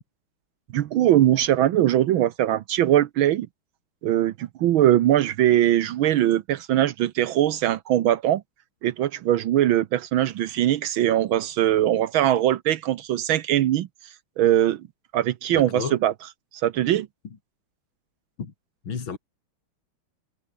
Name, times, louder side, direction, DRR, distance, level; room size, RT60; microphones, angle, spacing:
voice 1, 0.7-3.5 4.0-8.4 8.8-13.9 14.4-14.8 15.1-16.1 16.6-17.1, right 12 dB, 75° right, 1.6 m, -21 dB
voice 2, 15.5-16.0 18.4-18.5 18.9-19.2, left 5 dB, 65° left, 3.5 m, -31 dB
omnidirectional pair, 2.3 m